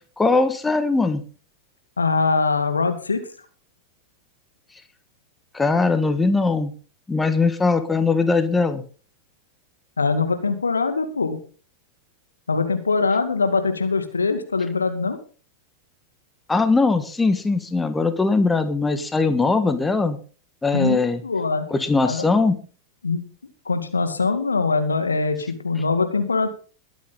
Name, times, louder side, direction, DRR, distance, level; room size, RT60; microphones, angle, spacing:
voice 1, 0.2-1.2 5.5-6.7 7.1-8.8 16.5-20.2 20.6-21.2 21.7-22.6, left 3 dB, 10° left, 10 dB, 1.6 m, -20 dB
voice 2, 2.0-3.2 10.0-11.4 12.5-15.2 20.7-21.7 22.0-22.2 23.0-23.2 23.7-26.5, left 4 dB, 75° left, 8 dB, 2.3 m, -22 dB
21.5 x 8.9 x 3.9 m, 0.38 s
figure-of-eight pair, 90°, 0 cm